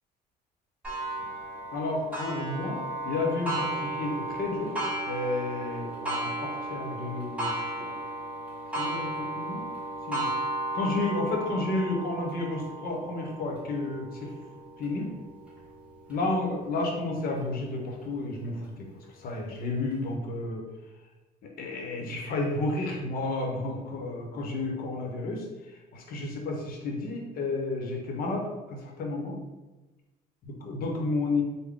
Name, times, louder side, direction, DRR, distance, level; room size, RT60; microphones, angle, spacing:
Clock, 0.8-16.2 16.7-16.8 17.4-17.5 18.4-18.5, right 1 dB, 10° right, 1.1 m, -35 dB
voice 1, 1.7-4.7 5.1-7.5 8.7-9.6 10.1-10.3 10.7-14.3 14.8-15.1 16.1-18.9 19.2-20.6 21.4-25.4 25.9-29.4 30.6-31.4, left 2 dB, 60° left, 1 dB, 0.9 m, -31 dB
3.5 x 2.1 x 3.6 m, 1.1 s
cardioid pair, 110°, 17 cm